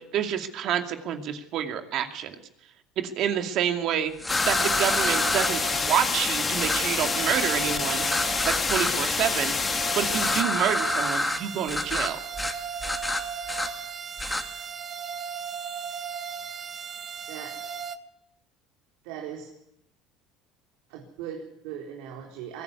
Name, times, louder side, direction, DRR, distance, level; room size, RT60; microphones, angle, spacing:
voice 1, 0.1-2.3 3.0-4.1 4.4-8.0 8.4-9.5 9.9-12.2, right 9 dB, 55° right, 6 dB, 2.5 m, -28 dB
sound 1, 4.2-5.5 6.6-6.8 8.0-8.9 10.1-11.4 11.7-12.1 12.4-12.5 12.8-13.7 14.2-14.4, left 2 dB, 10° left, 2.3 m, -28 dB
sound 2, 4.3-10.4, left 5 dB, 25° left, 1.5 m, -27 dB
sound 3, 4.4-18.0, right 7 dB, 30° right, 1.3 m, -36 dB
voice 2, 19.0-19.5 20.9-22.6, right 9 dB, 80° right, 1 dB, 4.2 m, -39 dB
22.5 x 17.5 x 9.7 m, 0.80 s
cardioid pair, 125°, 0 cm